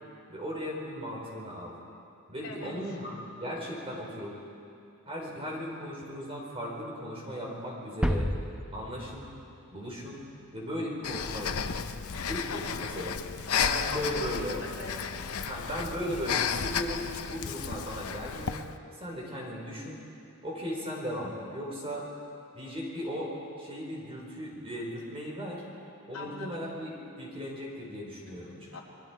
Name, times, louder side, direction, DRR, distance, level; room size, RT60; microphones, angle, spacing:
voice 1, 0.3-1.7 2.3-3.1 3.4-4.3 5.1-8.3 8.7-9.3 9.7-10.2 10.5-11.7 12.2-13.1 13.5-14.6 15.5-18.6 19.0-20.0 20.4-22.1 22.5-23.3 23.6-25.6 26.1-26.9 27.2-28.7, equal, 25° right, -2 dB, 4.7 m, -37 dB
voice 2, 2.4-3.2 12.5-12.9 13.5-15.1 15.4-15.6 26.1-26.7 28.7-28.8, left 3 dB, 70° left, -3 dB, 3.4 m, -43 dB
sound 1, 8.0-10.1, equal, 5° right, 0.8 m, -31 dB
Breathing, 11.0-18.7, left 7 dB, 85° left, 0.8 m, -33 dB
29.0 x 21.0 x 4.7 m, 2.6 s
head